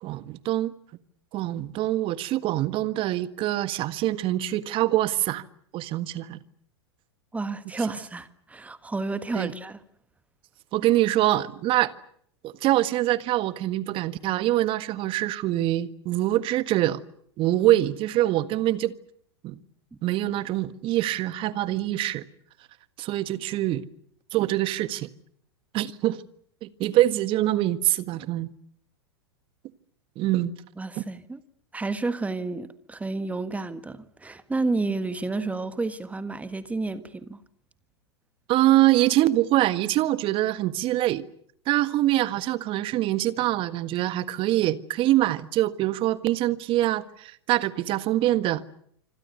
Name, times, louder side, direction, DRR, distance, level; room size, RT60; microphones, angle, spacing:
voice 1, 0.0-0.7 1.3-5.4 5.7-6.4 9.3-9.5 10.7-11.9 12.4-17.0 17.4-18.9 19.4-19.6 20.0-22.2 23.0-23.8 24.3-25.1 25.7-26.2 26.6-28.5 30.2-30.5 31.0-31.1 38.5-41.3 41.7-48.6, right 15 dB, 40° right, 1.6 m, -24 dB
voice 2, 7.3-9.8 19.9-20.0 30.8-31.4 31.7-37.4, right 3 dB, 10° right, 1.6 m, -30 dB
26.0 x 26.0 x 6.8 m
hypercardioid pair, 100°, 14 cm